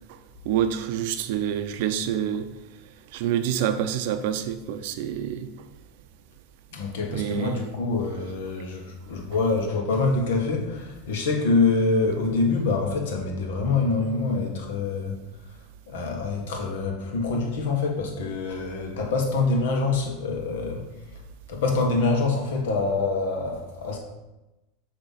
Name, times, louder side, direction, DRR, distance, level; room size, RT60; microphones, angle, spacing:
voice 1, 0.4-2.5 3.1-5.5 7.1-7.7, right 9 dB, 70° right, 10 dB, 0.5 m, -27 dB
voice 2, 6.7-15.2 15.5-15.6 15.9-20.9 21.5-24.0, left 3 dB, 80° left, 2 dB, 1.3 m, -25 dB
6.7 x 2.9 x 5.7 m, 1.0 s
hypercardioid pair, 110°, 0 cm